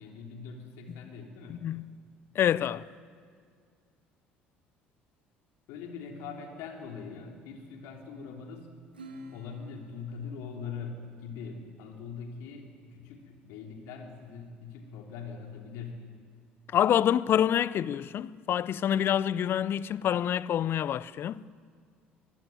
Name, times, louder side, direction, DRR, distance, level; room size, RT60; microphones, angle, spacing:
voice 1, 0.0-1.7 5.7-8.8 9.3-16.0, left 5 dB, 65° left, 3.3 m, -42 dB
voice 2, 1.5-1.8 2.3-2.9 16.7-21.4, left 10 dB, 45° left, 0.6 m, -27 dB
Acoustic guitar / Strum, 8.9-11.8, equal, 90° right, 2.2 m, -50 dB
23.0 x 15.5 x 9.3 m
figure-of-eight pair, 55°, 5 cm